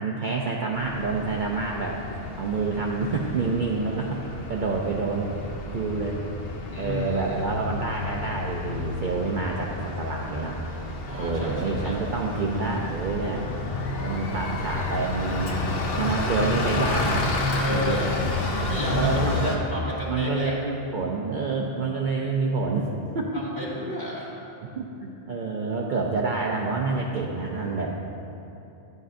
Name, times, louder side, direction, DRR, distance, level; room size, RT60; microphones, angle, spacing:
voice 1, 0.0-2.0 2.4-4.2 4.5-5.3 5.7-6.2 6.7-10.6 11.1-13.4 14.0-17.3 17.7-18.0 18.9-19.6 20.1-22.9 23.1-23.3 24.8-27.9, right 4 dB, 55° right, -2 dB, 0.7 m, -28 dB
Bus, 0.7-19.6, left 2 dB, 60° left, 0.9 m, -30 dB
voice 2, 6.7-7.6 11.1-12.0 17.6-18.1 18.6-20.5 23.3-24.3, left 1 dB, 20° left, -7 dB, 1.8 m, -32 dB
11.5 x 8.0 x 2.5 m, 3.0 s
omnidirectional pair, 1.1 m